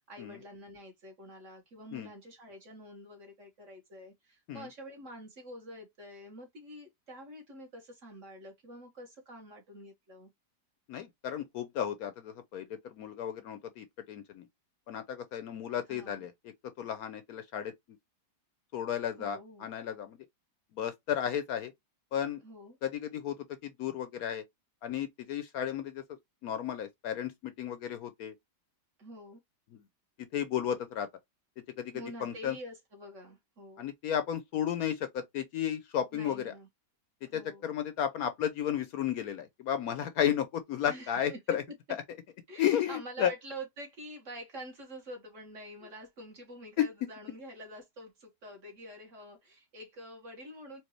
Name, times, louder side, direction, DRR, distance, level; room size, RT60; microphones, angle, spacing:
voice 1, 0.0-10.3 15.9-16.3 19.2-19.7 22.4-22.8 29.0-29.4 31.9-33.9 36.1-36.7 37.2-37.7 40.9-41.4 42.5-50.8, right 1 dB, 50° right, 1.8 m, -47 dB
voice 2, 10.9-14.4 14.9-16.3 16.8-17.7 18.7-20.2 20.8-21.7 22.1-22.4 22.8-23.4 23.6-24.4 24.8-26.0 26.4-28.3 30.3-31.1 31.8-31.9 32.2-32.5 33.8-36.5 37.3-41.6 41.9-42.0 42.6-43.3, left 9 dB, 70° left, 1.0 m, -33 dB
4.5 x 2.6 x 3.0 m
omnidirectional pair, 1.8 m